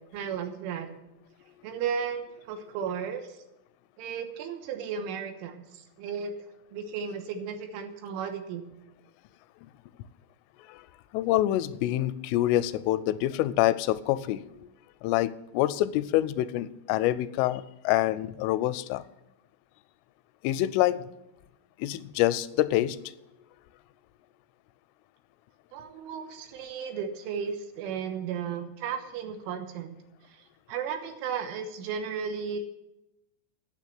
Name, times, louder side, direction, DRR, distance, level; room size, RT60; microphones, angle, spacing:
voice 1, 0.1-0.9 1.6-3.4 4.0-6.3 6.7-8.6 25.7-29.9 30.3-32.6, right 7 dB, 85° right, 6 dB, 3.7 m, -34 dB
voice 2, 11.1-14.4 15.0-19.0 20.4-21.0 21.8-23.1, left 14 dB, 85° left, 15 dB, 3.1 m, -26 dB
9.7 x 7.9 x 9.2 m, 0.89 s
omnidirectional pair, 5.6 m